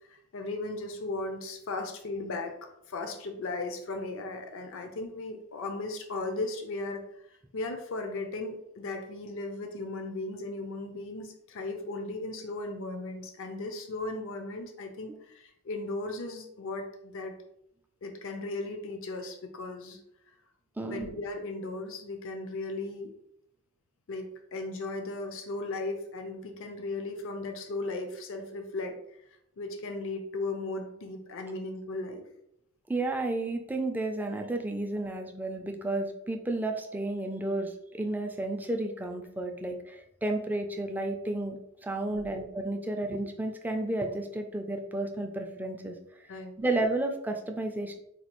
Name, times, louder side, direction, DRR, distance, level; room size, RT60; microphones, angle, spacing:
voice 1, 0.1-2.5 2.9-7.0 7.3-17.3 18.0-20.0 20.3-20.4 20.9-23.1 24.1-29.0 29.6-32.2 42.1-42.3 46.3-46.5, left 2 dB, 65° left, 5 dB, 0.5 m, -36 dB
voice 2, 20.8-21.1 32.9-46.0 46.6-48.0, right 2 dB, 10° right, 3 dB, 0.3 m, -32 dB
4.1 x 2.3 x 2.9 m, 0.76 s
head